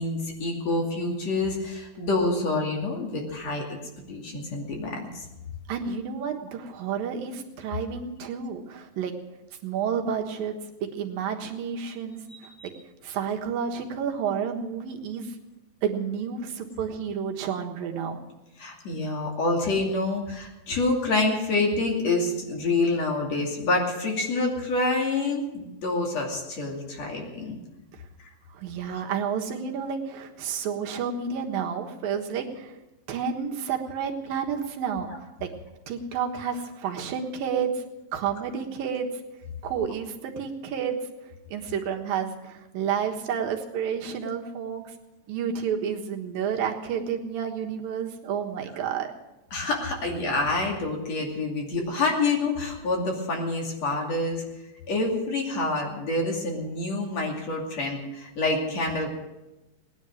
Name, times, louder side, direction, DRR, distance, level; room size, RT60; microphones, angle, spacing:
voice 1, 0.0-3.8 4.1-5.2 12.6-12.7 18.6-27.6 49.5-54.4 54.9-59.1, left 2 dB, 50° left, 0 dB, 3.6 m, -27 dB
voice 2, 5.7-9.1 9.6-10.5 10.8-12.5 13.0-15.4 15.8-18.2 28.5-32.8 33.1-35.5 35.9-37.8 38.1-39.1 39.6-41.0 41.5-44.8 45.3-49.1, right 7 dB, 85° right, 2 dB, 3.2 m, -30 dB
19.0 x 10.5 x 6.4 m, 1.0 s
omnidirectional pair, 4.0 m